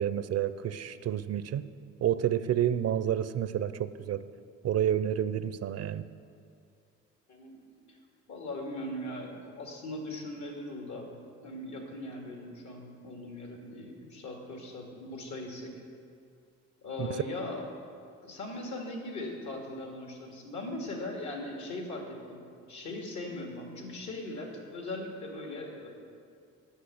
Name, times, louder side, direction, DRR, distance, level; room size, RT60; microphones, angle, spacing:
voice 1, 0.0-1.6 2.0-4.2 4.6-6.1 17.0-17.1, right 10 dB, 55° right, 14 dB, 0.5 m, -29 dB
voice 2, 7.3-7.6 7.9-8.0 8.3-11.1 11.4-15.7 16.8-17.7 18.2-22.4 22.7-25.9, left 2 dB, 70° left, 2 dB, 2.3 m, -39 dB
9.9 x 6.3 x 8.5 m, 2.4 s
cardioid pair, 90°, 30 cm